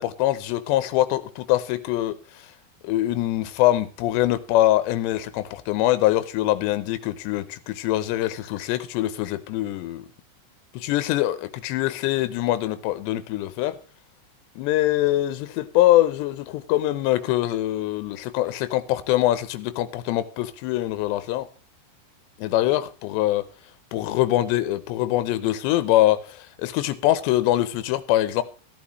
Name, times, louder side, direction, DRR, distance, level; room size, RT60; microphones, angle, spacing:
voice 1, 0.0-2.2 2.8-10.1 10.7-13.8 14.6-21.5 22.4-23.5 23.9-28.4, left 15 dB, 85° left, 2.9 m, -23 dB
14.0 x 12.5 x 3.1 m
omnidirectional pair, 5.0 m